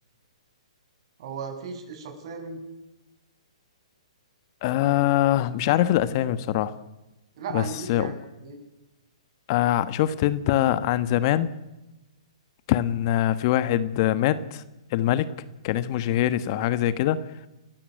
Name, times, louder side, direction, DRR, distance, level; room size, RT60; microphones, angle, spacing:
voice 1, 1.2-2.6 7.4-8.2 8.4-8.6, right 5 dB, 50° right, 6 dB, 7.4 m, -36 dB
voice 2, 4.6-6.7 7.5-8.1 9.5-11.5 12.7-14.6 14.9-15.3 15.6-17.2, left 12 dB, 40° left, 14 dB, 1.3 m, -23 dB
29.5 x 15.5 x 9.3 m, 1.0 s
hypercardioid pair, 130°, 3 cm